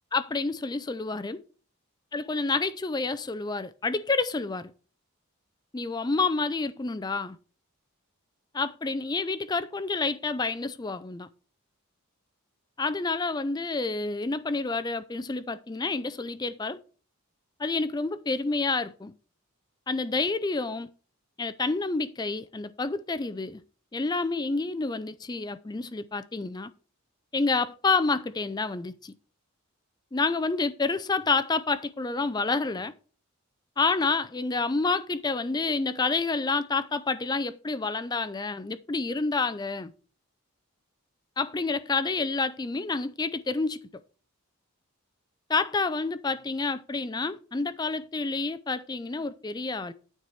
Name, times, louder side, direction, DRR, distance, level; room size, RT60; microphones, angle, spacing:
voice 1, 0.1-1.4 2.1-4.7 5.7-7.4 8.5-11.3 12.8-16.8 17.6-19.1 19.9-20.9 21.4-23.6 23.9-26.7 27.3-29.1 30.1-32.9 33.8-39.9 41.4-43.8 45.5-49.9, left 3 dB, 20° left, 0.4 m, -29 dB
9.6 x 4.7 x 5.7 m
head